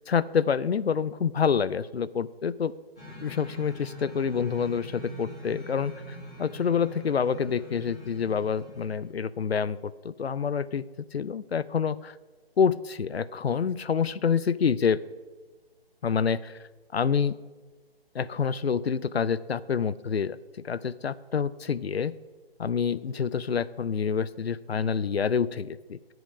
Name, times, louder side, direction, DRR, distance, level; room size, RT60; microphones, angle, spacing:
voice 1, 0.1-2.7 3.2-10.8 11.1-12.2 12.6-15.0 16.0-16.6 16.9-17.4 18.1-20.4 20.6-22.1 22.6-26.0, left 6 dB, 85° left, 18 dB, 0.5 m, -27 dB
sound 1, 3.0-9.2, equal, 5° left, 0.5 m, -44 dB
9.5 x 7.8 x 4.9 m, 1.3 s
figure-of-eight pair, 155°, 30 cm